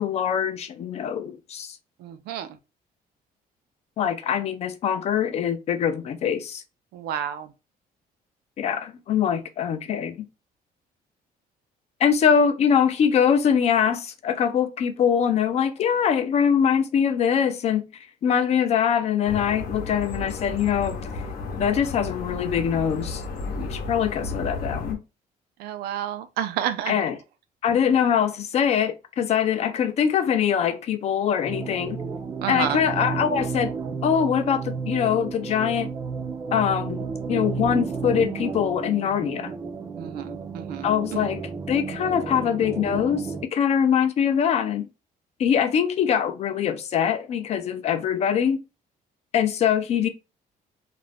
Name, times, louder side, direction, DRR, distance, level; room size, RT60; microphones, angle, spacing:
voice 1, 0.0-1.8 4.0-6.6 8.6-10.2 12.0-17.8 18.2-21.0 21.6-23.2 23.6-25.0 26.9-27.2 27.6-32.0 32.5-33.7 34.0-35.9 36.5-39.5 40.8-41.4 41.7-44.9 45.4-48.6 49.3-50.1, left 8 dB, 40° left, 0.4 m, -23 dB
voice 2, 2.0-2.5 6.9-7.5 25.6-27.0 32.4-32.8 40.0-41.2, right 10 dB, 90° right, 0.5 m, -30 dB
sound 1, 19.2-24.9, left 3 dB, 70° left, 0.8 m, -33 dB
sound 2, 31.5-43.5, right 5 dB, 25° right, 0.4 m, -32 dB
2.5 x 2.0 x 3.3 m
cardioid pair, 155°, 16 cm